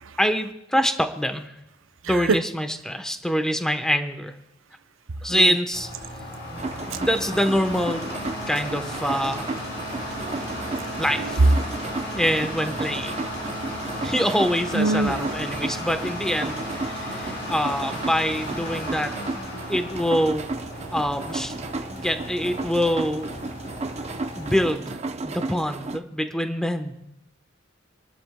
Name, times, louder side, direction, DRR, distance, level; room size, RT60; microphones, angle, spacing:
voice 1, 0.2-1.5 2.1-4.3 5.2-5.9 7.0-8.0 8.5-9.5 11.0-11.6 12.1-13.2 14.0-19.2 19.7-20.5 20.9-23.3 24.4-25.0 25.2-27.1, equal, 5° left, 0.9 m, -25 dB
voice 2, 2.0-2.4 5.3-5.6 10.0-11.6 14.7-15.4, right 2 dB, 90° right, 0.6 m, -24 dB
sound 1, 5.7-24.7, left 1 dB, 60° left, 4.5 m, -35 dB
sound 2, 6.6-26.0, right 3 dB, 35° right, 0.6 m, -34 dB
sound 3, 6.8-13.9, equal, 80° left, 5.2 m, -50 dB
28.0 x 12.5 x 2.2 m
head